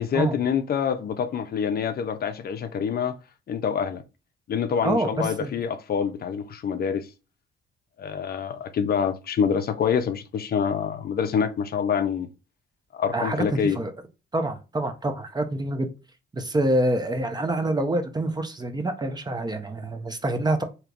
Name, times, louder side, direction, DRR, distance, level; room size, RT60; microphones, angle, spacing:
voice 1, 0.0-3.2 3.5-4.0 4.5-7.1 8.0-12.3 12.9-13.8, left 7 dB, 50° left, 0.5 m, -26 dB
voice 2, 4.8-5.5 13.1-13.9 14.3-15.9 16.3-20.6, right 1 dB, 20° right, 0.6 m, -26 dB
3.3 x 2.8 x 2.4 m
cardioid pair, 90°, 20 cm